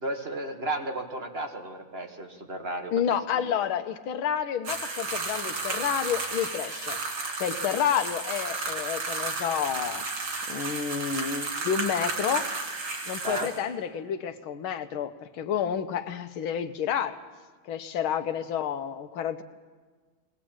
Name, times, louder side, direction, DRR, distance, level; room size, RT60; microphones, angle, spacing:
voice 1, 0.0-2.9 3.3-3.4 13.2-13.5, right 2 dB, 35° right, 4 dB, 1.4 m, -33 dB
voice 2, 2.9-7.0 7.3-10.0 10.5-12.5 13.1-17.2 17.7-19.4, left 8 dB, 80° left, 9 dB, 1.8 m, -30 dB
sound 1, 4.6-13.6, right 3 dB, 75° right, 3.7 m, -33 dB
22.0 x 17.5 x 8.7 m, 1.4 s
omnidirectional pair, 2.3 m